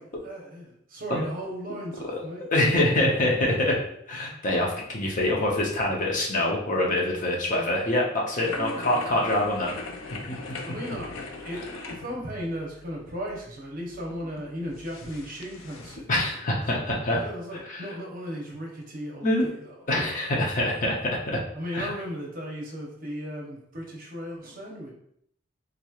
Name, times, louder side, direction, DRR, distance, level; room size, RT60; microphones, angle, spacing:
voice 1, 0.0-2.5 8.6-8.9 10.6-11.1 11.4-16.4 17.1-20.4 21.5-24.9, equal, 45° right, -1 dB, 0.8 m, -36 dB
voice 2, 2.5-3.8 4.1-9.8 10.3-10.4 10.6-10.7 16.1-17.2 17.7-17.8 19.2-19.5 19.9-21.4 21.7-21.9, left 1 dB, 40° left, -2 dB, 0.7 m, -25 dB
sound 1, 8.4-16.0, left 3 dB, 85° left, 0.4 m, -41 dB
3.8 x 3.0 x 2.4 m, 0.71 s
head